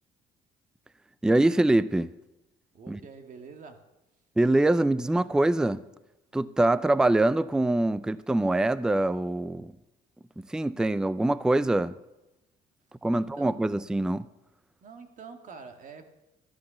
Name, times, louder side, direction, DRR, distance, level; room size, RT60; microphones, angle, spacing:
voice 1, 1.2-2.1 2.9-3.0 4.4-5.8 6.3-9.7 10.5-11.9 13.0-14.3, right 2 dB, 5° right, 0.4 m, -24 dB
voice 2, 2.7-3.8 13.1-13.6 14.8-16.1, right 5 dB, 50° right, 1.8 m, -46 dB
13.0 x 11.5 x 6.9 m
cardioid pair, 110°, 17 cm